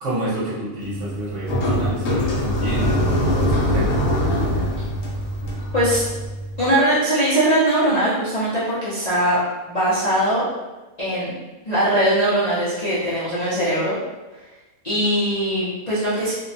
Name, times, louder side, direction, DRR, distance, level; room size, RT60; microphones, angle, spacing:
voice 1, 0.0-4.0, right 1 dB, 60° right, -8 dB, 1.1 m, -29 dB
sound 1, 0.8-6.7, equal, 70° left, 0.9 m, -23 dB
voice 2, 5.7-6.0 6.6-9.4 9.7-10.4 11.0-11.3 11.6-14.0 14.8-16.3, right 1 dB, 45° left, -12 dB, 0.5 m, -20 dB
2.7 x 2.2 x 2.6 m, 1.1 s
omnidirectional pair, 1.5 m